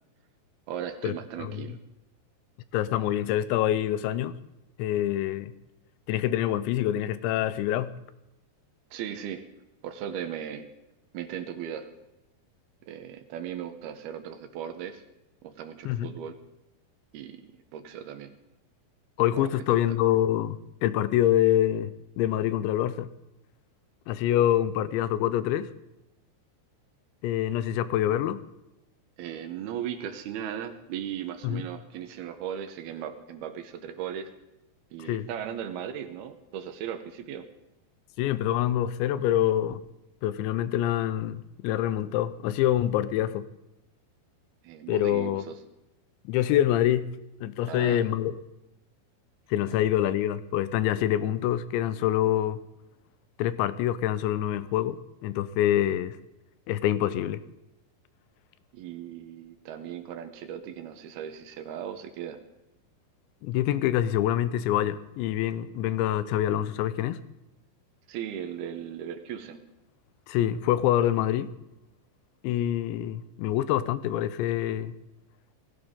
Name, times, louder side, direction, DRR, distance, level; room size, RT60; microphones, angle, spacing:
voice 1, 0.7-1.8 8.9-9.4 9.8-10.7 11.1-11.9 12.9-15.0 15.4-16.4 17.1-17.4 17.7-18.3 19.4-19.8 29.2-34.3 34.9-37.5 44.6-45.6 47.7-48.0 58.7-62.4 68.1-69.6, right 9 dB, 70° right, 2.7 m, -37 dB
voice 2, 2.7-4.4 4.8-5.5 6.1-8.0 15.9-16.1 19.2-23.1 24.1-25.7 27.2-28.4 31.4-31.7 35.0-35.3 38.2-39.8 40.2-43.5 44.9-45.4 46.3-47.1 47.4-48.4 49.5-52.6 53.4-56.2 56.7-57.4 63.4-67.2 70.3-71.5 72.4-75.0, left 12 dB, 85° left, 3.0 m, -26 dB
20.0 x 16.0 x 3.7 m
omnidirectional pair, 5.1 m